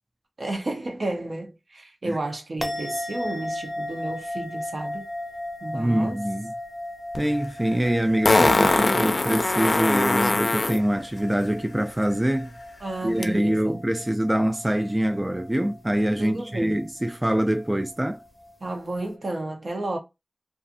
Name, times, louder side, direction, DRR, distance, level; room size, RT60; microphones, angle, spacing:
voice 1, 0.4-5.1 5.6-6.2 8.5-9.1 10.2-10.3 12.8-13.9 16.2-16.8 18.6-20.0, right 2 dB, 70° right, 0.8 m, -32 dB
sound 1, 2.6-19.1, left 1 dB, 5° left, 0.7 m, -37 dB
voice 2, 5.7-6.5 7.2-12.5 13.0-18.2, right 1 dB, 20° right, 0.3 m, -24 dB
Fart, 7.1-7.2 8.2-10.8 13.2-13.3, left 2 dB, 65° left, 0.4 m, -21 dB
2.4 x 2.4 x 2.6 m
wide cardioid pair, 50°, 0 cm